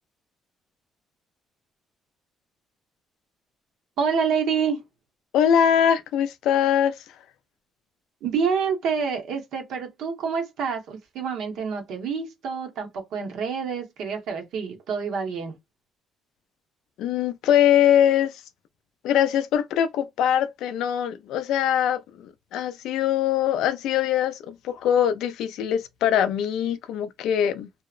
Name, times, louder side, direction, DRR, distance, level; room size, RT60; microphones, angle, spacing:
voice 1, 4.0-4.8 8.2-15.6, right 6 dB, 70° right, 0.8 m, -27 dB
voice 2, 5.3-7.0 17.0-18.4 19.0-27.8, left 9 dB, 80° left, 0.4 m, -22 dB
2.7 x 2.0 x 2.3 m
cardioid pair, 160°, 0 cm